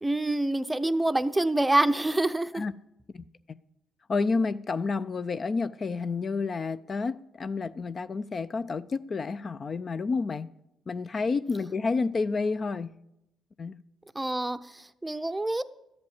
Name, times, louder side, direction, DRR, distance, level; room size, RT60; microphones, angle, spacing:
voice 1, 0.0-2.6 14.1-15.6, right 2 dB, 10° right, 0.6 m, -26 dB
voice 2, 3.1-3.6 4.1-10.5 10.9-13.0 13.6-13.8, left 4 dB, 40° left, 0.4 m, -30 dB
12.5 x 7.8 x 7.1 m
cardioid pair, 90°, 0 cm